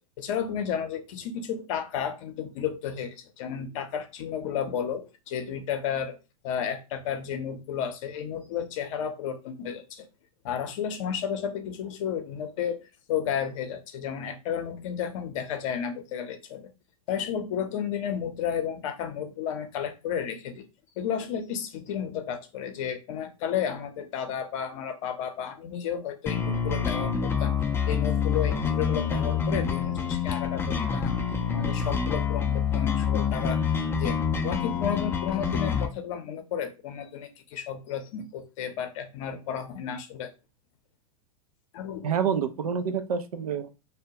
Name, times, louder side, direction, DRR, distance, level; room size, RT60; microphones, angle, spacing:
voice 1, 0.2-6.2 6.4-10.1 10.4-16.7 17.1-20.6 21.0-27.5 27.9-31.2 31.5-33.6 33.9-34.2 34.4-40.3 41.7-42.1, left 8 dB, 60° left, 0.6 m, -32 dB
sound 1, 26.3-35.9, left 7 dB, 15° left, 0.4 m, -27 dB
voice 2, 42.0-43.7, right 7 dB, 85° right, 0.5 m, -27 dB
2.2 x 2.1 x 2.7 m
hypercardioid pair, 110°, 18 cm